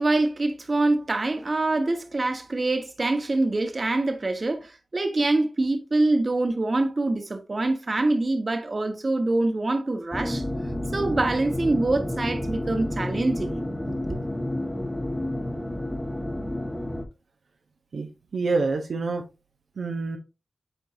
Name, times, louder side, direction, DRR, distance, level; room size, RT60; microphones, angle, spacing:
voice 1, 0.0-10.4 10.9-13.5 13.9-14.2, right 2 dB, 45° right, 1.3 m, -25 dB
sound 1, 10.1-17.0, left 1 dB, 15° left, 1.4 m, -30 dB
voice 2, 17.9-19.2 19.8-20.2, right 3 dB, 80° right, 0.9 m, -27 dB
8.9 x 4.5 x 2.7 m
cardioid pair, 50°, 0 cm